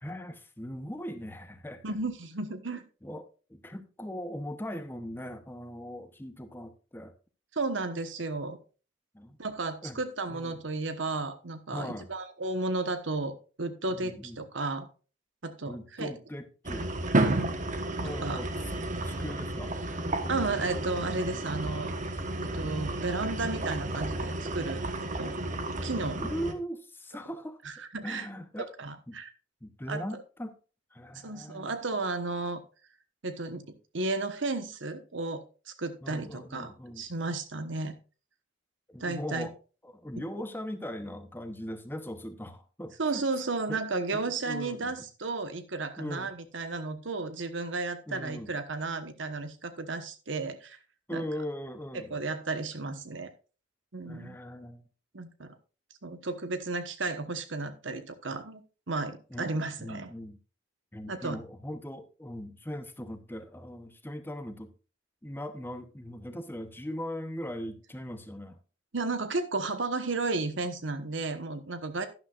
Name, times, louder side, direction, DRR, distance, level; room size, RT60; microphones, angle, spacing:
voice 1, 0.0-1.8 3.0-7.1 9.1-9.4 9.8-10.0 10.3-10.5 11.7-12.1 13.9-14.4 15.7-16.9 18.0-18.5 19.0-19.8 26.2-27.6 28.0-28.7 29.1-29.2 29.6-30.5 30.9-31.7 36.0-37.0 38.9-39.5 39.8-43.2 43.7-43.8 44.1-44.9 46.0-46.3 48.1-48.5 51.1-52.1 54.0-54.8 59.3-59.5 59.8-60.4 60.9-64.7 65.2-68.6, equal, 10° left, 0.8 m, -39 dB
voice 2, 1.8-2.8 7.5-8.6 9.4-14.9 15.4-16.2 17.2-17.6 18.0-18.4 20.3-21.9 22.4-25.3 25.8-26.2 27.6-28.3 28.6-29.3 29.9-30.0 31.2-32.6 33.2-37.9 39.0-39.5 40.1-40.2 43.0-50.8 51.1-51.4 51.9-53.3 53.9-54.3 55.1-55.6 56.0-58.6 58.9-60.1 61.1-61.4 68.9-72.1, right 3 dB, 75° right, 1.2 m, -33 dB
sound 1, 16.6-26.5, right 2 dB, 40° right, 1.2 m, -32 dB
11.5 x 10.5 x 2.5 m
head